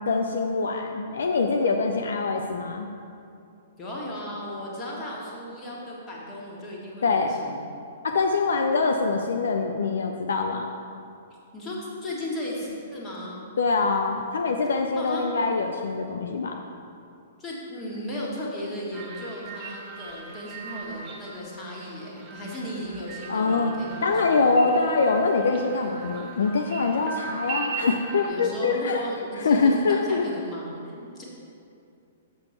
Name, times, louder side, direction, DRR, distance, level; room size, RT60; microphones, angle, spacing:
voice 1, 0.0-2.9 7.0-7.3 8.0-10.7 13.6-16.6 23.3-23.7 24.0-29.0 29.3-30.3, left 4 dB, 60° left, 3 dB, 0.4 m, -24 dB
voice 2, 3.8-7.6 11.5-11.8 12.0-13.4 15.0-15.3 17.4-24.6 28.3-31.2, left 1 dB, 20° left, -4 dB, 1.7 m, -36 dB
sound 1, 18.9-28.3, right 5 dB, 30° right, 0.9 m, -39 dB
6.8 x 6.8 x 4.4 m, 2.5 s
figure-of-eight pair, 110°, 0 cm